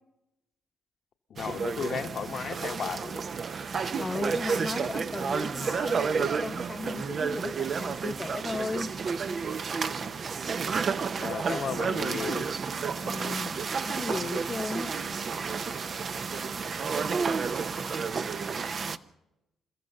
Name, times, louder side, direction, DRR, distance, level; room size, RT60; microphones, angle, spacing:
voice 1, 1.3-3.2 11.2-12.5, left 7 dB, 60° left, 6 dB, 1.3 m, -34 dB
sound 1, 1.4-19.0, right 5 dB, 50° right, 0.8 m, -31 dB
voice 2, 4.0-8.9 13.0-14.9, left 3 dB, 30° left, 6 dB, 0.8 m, -36 dB
28.0 x 14.0 x 6.6 m, 0.95 s
hypercardioid pair, 55°, 0 cm